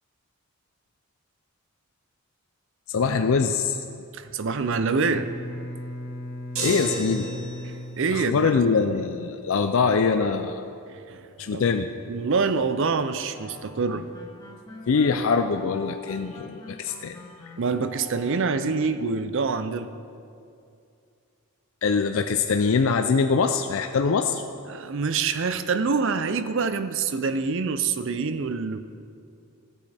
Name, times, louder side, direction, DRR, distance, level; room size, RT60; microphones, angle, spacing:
voice 1, 2.9-3.8 6.6-7.3 8.1-10.6 11.4-11.9 14.9-17.2 21.8-24.4, left 5 dB, 60° left, 7 dB, 0.4 m, -23 dB
voice 2, 4.1-5.3 8.0-8.5 11.1-11.2 11.5-11.6 12.1-14.1 17.6-19.9 24.7-28.8, right 4 dB, 60° right, 11 dB, 0.5 m, -26 dB
Bowed string instrument, 4.5-8.7, left 1 dB, 45° left, 1.3 m, -37 dB
sound 1, 6.5-7.9, right 2 dB, 75° right, 2.4 m, -32 dB
sound 2, 13.3-18.8, left 2 dB, 15° left, 1.6 m, -45 dB
16.5 x 8.4 x 3.4 m, 2.5 s
head